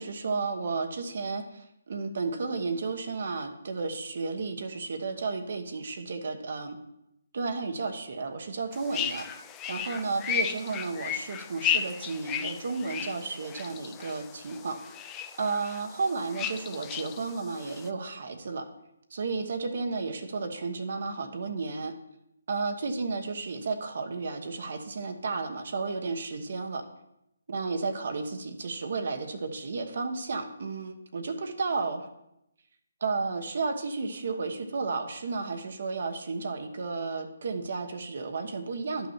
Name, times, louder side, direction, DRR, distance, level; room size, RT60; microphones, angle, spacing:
voice 1, 0.0-6.8 7.3-9.3 9.7-14.9 15.4-18.7 19.1-21.9 22.5-26.8 27.5-32.1 33.0-39.1, right 4 dB, 60° right, 5 dB, 1.1 m, -33 dB
sound 1, 8.7-17.9, left 8 dB, 20° left, 0.5 m, -35 dB
11.5 x 5.8 x 4.4 m, 0.82 s
figure-of-eight pair, 145°, 0 cm